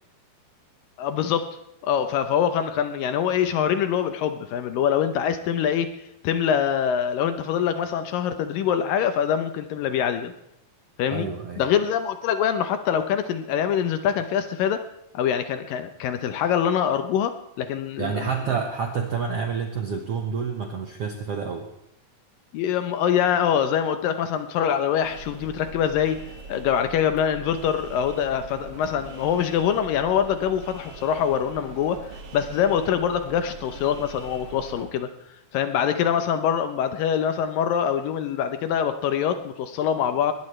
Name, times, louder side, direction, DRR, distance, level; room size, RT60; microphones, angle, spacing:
voice 1, 1.0-1.5 1.8-5.9 6.2-10.3 11.0-11.3 11.6-14.8 15.1-18.1 22.5-26.2 26.5-32.0 32.3-35.1 35.5-40.3, left 8 dB, 75° left, 9 dB, 2.4 m, -24 dB
voice 2, 11.1-11.6 18.0-21.7, right 6 dB, 70° right, 3 dB, 1.4 m, -28 dB
sound 1, 25.0-34.9, right 3 dB, 45° right, 2.3 m, -42 dB
21.0 x 18.5 x 3.3 m, 0.80 s
omnidirectional pair, 4.4 m